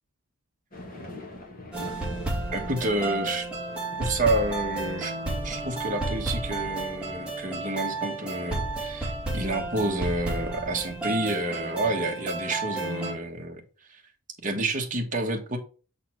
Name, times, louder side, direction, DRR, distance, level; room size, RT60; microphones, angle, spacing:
sound 1, 0.7-13.4, left 2 dB, 40° left, 1.8 m, -48 dB
sound 2, 1.7-13.1, right 2 dB, 5° right, 2.1 m, -32 dB
voice 1, 2.5-3.5 4.0-5.1 5.4-13.6 13.9-14.0 14.4-15.6, right 2 dB, 35° right, 1.5 m, -29 dB
7.4 x 4.1 x 4.4 m
head